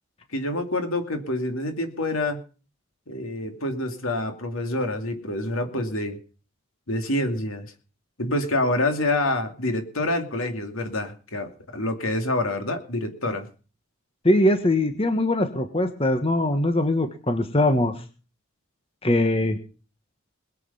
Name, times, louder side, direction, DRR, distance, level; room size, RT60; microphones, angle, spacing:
voice 1, 0.3-2.4 3.1-6.2 6.9-7.7 8.2-13.5, left 1 dB, 75° left, 6 dB, 2.6 m, -27 dB
voice 2, 14.2-17.9 19.0-19.6, left 1 dB, 25° left, 8 dB, 1.3 m, -21 dB
21.0 x 8.5 x 5.6 m, 0.37 s
head